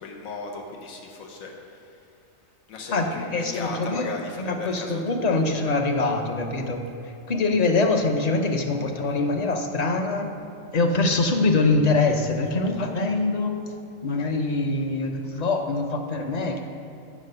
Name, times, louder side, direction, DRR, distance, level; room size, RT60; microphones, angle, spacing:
voice 1, 0.0-1.7 2.7-5.4 8.9-9.3, left 3 dB, 90° left, 1 dB, 1.2 m, -36 dB
voice 2, 2.9-6.8 7.3-10.3 10.7-13.5 14.0-16.6, left 3 dB, 45° left, 4 dB, 0.6 m, -24 dB
7.4 x 5.3 x 6.6 m, 2.7 s
omnidirectional pair, 1.4 m